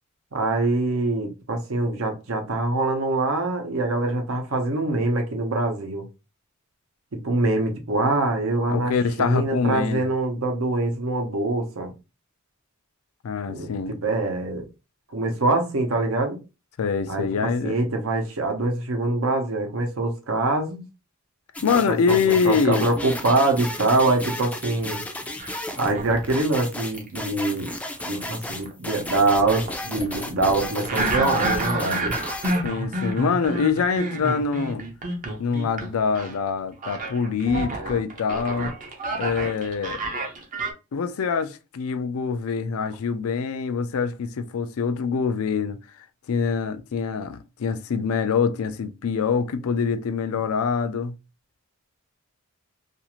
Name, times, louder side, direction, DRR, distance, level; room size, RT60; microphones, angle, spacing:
voice 1, 0.3-6.0 7.2-11.9 13.5-14.6 15.1-16.4 17.1-20.8 21.7-25.0 25.8-27.7 28.0-32.1, right 2 dB, 70° right, 0.8 m, -24 dB
voice 2, 8.7-10.1 13.2-13.9 16.8-17.8 21.6-22.9 32.6-34.8 35.4-38.7 39.2-40.0 40.9-45.8 46.3-51.1, left 5 dB, 80° left, 0.4 m, -25 dB
sound 1, 21.5-32.6, left 1 dB, 5° left, 0.4 m, -34 dB
sound 2, 25.4-26.4 26.9-35.9 36.1-36.4 36.8-40.7, right 2 dB, 40° right, 0.6 m, -29 dB
2.5 x 2.4 x 2.9 m
head